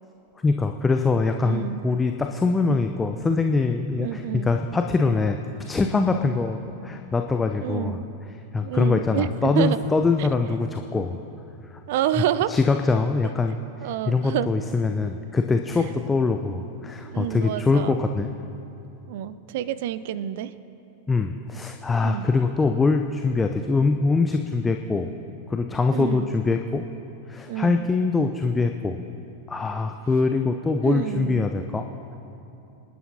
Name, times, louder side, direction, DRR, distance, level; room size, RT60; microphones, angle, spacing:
voice 1, 0.4-5.4 5.7-8.0 8.5-11.2 12.5-18.3 21.1-25.1 25.5-26.8 27.3-29.0 29.5-31.9, left 4 dB, 15° left, 5 dB, 0.5 m, -23 dB
voice 2, 1.4-1.8 4.0-4.6 7.6-8.1 8.6-9.8 10.2-10.3 11.9-12.5 13.8-14.5 17.0-18.0 19.1-20.5 22.0-22.3 25.9-26.3 27.5-27.9 30.8-31.5, right 12 dB, 50° right, 15 dB, 0.5 m, -28 dB
26.5 x 11.0 x 2.8 m, 2.8 s
figure-of-eight pair, 90°, 0 cm